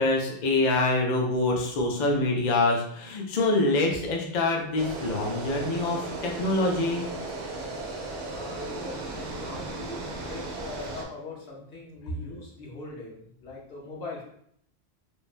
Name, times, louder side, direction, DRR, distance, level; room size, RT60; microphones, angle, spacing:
voice 1, 0.0-7.0, left 2 dB, 55° left, 0 dB, 0.5 m, -25 dB
sound 1, 4.8-11.0, right 2 dB, 85° right, 0.8 m, -36 dB
voice 2, 7.4-7.9 8.3-14.2, left 3 dB, 75° left, -3 dB, 1.1 m, -41 dB
3.1 x 2.1 x 2.4 m, 0.68 s
omnidirectional pair, 1.1 m